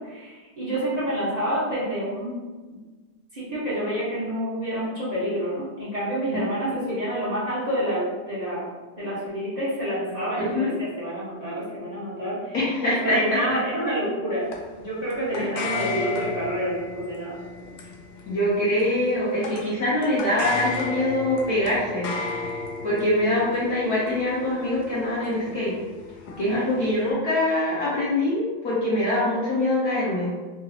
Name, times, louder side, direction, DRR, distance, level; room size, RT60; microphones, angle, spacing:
voice 1, 0.0-2.8 3.3-8.7 9.0-14.5 14.8-17.4 26.4-26.6, equal, 30° right, -10 dB, 0.7 m, -28 dB
voice 2, 10.4-10.8 12.5-13.4 15.4-15.5 18.2-22.1 22.8-25.7 26.4-30.3, left 1 dB, 60° left, -8 dB, 1.0 m, -24 dB
sound 1, 14.5-27.1, left 3 dB, 90° left, 0.9 m, -35 dB
3.8 x 2.4 x 2.8 m, 1.3 s
omnidirectional pair, 2.3 m